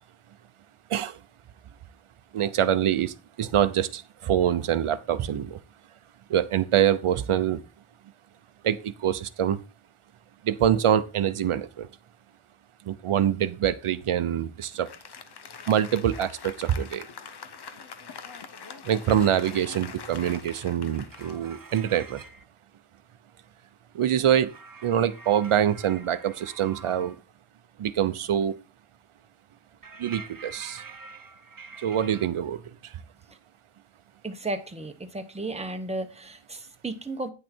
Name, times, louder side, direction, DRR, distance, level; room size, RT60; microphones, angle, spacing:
voice 1, 0.9-1.2 2.3-5.6 6.3-7.6 8.6-9.6 10.4-11.9 12.9-14.9 15.7-17.1 18.8-22.2 23.9-24.5 24.8-27.2 27.8-28.5 30.0-30.8 31.8-33.0, right 10 dB, 85° right, 12 dB, 0.8 m, -25 dB
Applause, 14.6-22.2, left 6 dB, 50° left, 0.8 m, -44 dB
sound 1, 20.8-22.4 24.4-27.2 29.8-32.3, right 4 dB, 40° right, 0.9 m, -46 dB
voice 2, 34.2-37.3, right 2 dB, 15° right, 6 dB, 1.0 m, -34 dB
9.3 x 6.4 x 4.4 m, 0.30 s
wide cardioid pair, 135°, 49 cm